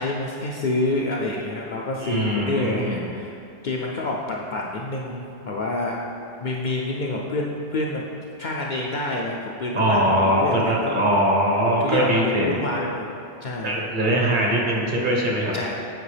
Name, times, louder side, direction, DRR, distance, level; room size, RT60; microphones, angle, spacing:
voice 1, 0.0-6.0 6.4-8.0 8.4-11.0 11.8-13.0 13.4-13.8 15.5-15.8, left 2 dB, 55° left, -2 dB, 0.5 m, -28 dB
voice 2, 2.0-3.0 9.7-12.5 13.6-15.5, equal, 50° right, -2 dB, 1.1 m, -21 dB
8.1 x 4.5 x 3.3 m, 2.6 s
omnidirectional pair, 1.1 m